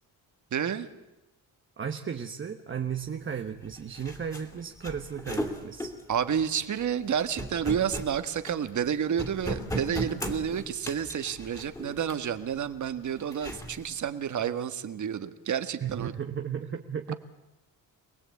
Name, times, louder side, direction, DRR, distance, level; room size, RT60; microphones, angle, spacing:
voice 1, 0.5-0.9 6.1-16.1, right 8 dB, 50° right, 10 dB, 1.6 m, -30 dB
voice 2, 1.8-5.9 15.8-17.1, right 7 dB, 35° right, 5 dB, 1.1 m, -35 dB
sound 1, 3.4-3.5 3.6-8.9 9.2-12.4 13.0-13.9, equal, 10° left, 2.8 m, -37 dB
27.0 x 20.0 x 8.5 m, 1.0 s
wide cardioid pair, 150°, 37 cm